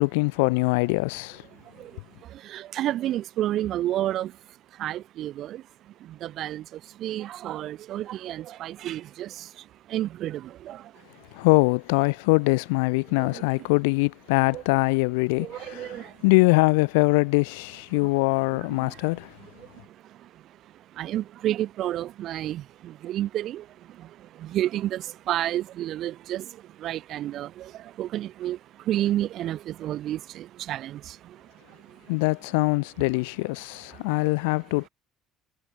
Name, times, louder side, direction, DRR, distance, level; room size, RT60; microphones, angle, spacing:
voice 1, 0.0-1.4 11.4-15.9 16.2-19.3 32.1-34.9, left 29 dB, 85° left, 3.7 m, -23 dB
voice 2, 1.5-4.4 4.7-11.0 13.2-13.7 14.5-14.6 15.4-16.2 17.9-18.1 18.5-32.2 33.9-34.3, right 13 dB, 60° right, 7.8 m, -32 dB
hypercardioid pair, 70°, 0 cm